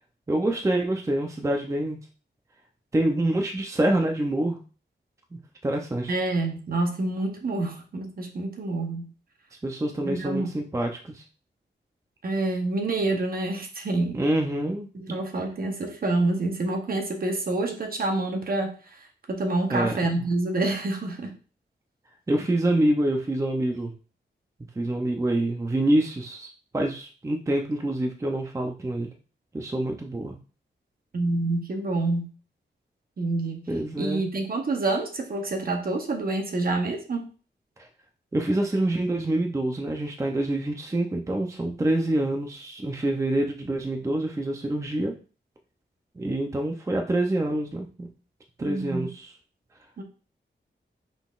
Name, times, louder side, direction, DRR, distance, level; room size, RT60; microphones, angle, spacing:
voice 1, 0.3-2.0 2.9-4.6 5.3-6.1 9.6-11.2 14.1-15.2 19.7-20.2 22.3-23.9 24.8-26.5 26.7-29.1 29.5-30.4 33.7-34.2 38.3-45.1 46.2-48.1 48.6-49.3, right 1 dB, 15° right, 3 dB, 0.5 m, -26 dB
voice 2, 6.1-9.1 10.0-10.5 12.2-14.2 14.9-19.0 19.3-21.3 31.1-32.3 33.2-33.6 34.0-37.3 48.6-49.1 50.0-50.1, right 2 dB, 50° right, 3 dB, 0.9 m, -27 dB
5.5 x 4.0 x 2.4 m, 0.36 s
wide cardioid pair, 180°, 19 cm